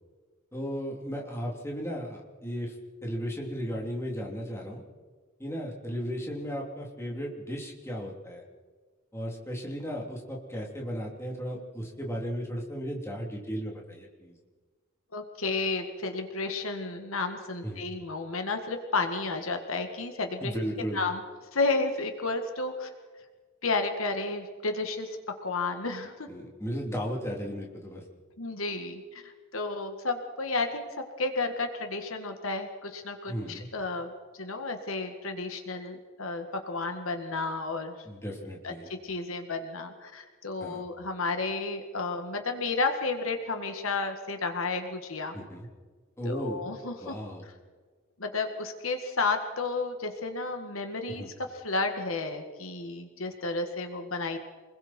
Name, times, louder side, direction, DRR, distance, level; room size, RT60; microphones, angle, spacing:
voice 1, 0.5-2.7 3.0-4.8 5.4-8.5 9.1-14.4 17.6-17.9 20.4-21.0 26.3-28.0 33.3-33.7 38.0-38.9 40.6-40.8 45.3-45.7 46.2-46.6 47.0-47.4 51.1-51.3, equal, 15° left, -1 dB, 3.4 m, -35 dB
voice 2, 15.1-20.5 20.9-21.2 21.5-22.9 23.6-25.2 25.4-26.3 28.4-30.9 31.2-34.1 34.4-38.0 38.6-38.7 39.0-45.3 46.2-47.2 48.2-51.2 51.5-54.4, left 3 dB, 70° left, 5 dB, 1.9 m, -32 dB
28.5 x 21.0 x 4.5 m, 1.4 s
head